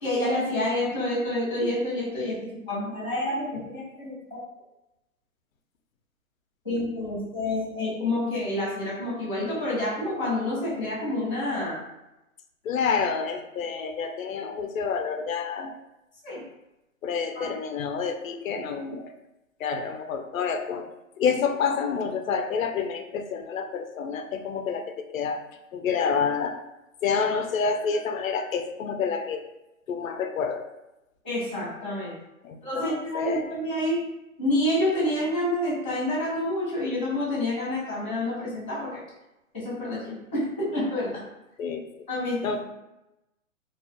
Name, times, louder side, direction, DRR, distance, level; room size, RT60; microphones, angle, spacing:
voice 1, 0.0-2.4 2.7-4.4 6.6-11.8 16.2-16.4 17.3-17.5 31.2-32.1 32.6-34.0 34.4-39.0 39.5-41.2 42.1-42.4, left 1 dB, 5° left, -17 dB, 0.5 m, -28 dB
voice 2, 12.6-15.8 17.0-19.1 19.6-20.9 21.2-25.4 25.7-26.6 27.0-29.4 29.9-30.7 32.4-33.5 41.6-41.8 42.4-42.6, left 6 dB, 75° left, 6 dB, 0.5 m, -28 dB
2.4 x 2.3 x 2.4 m, 0.95 s
hypercardioid pair, 170°, 42 cm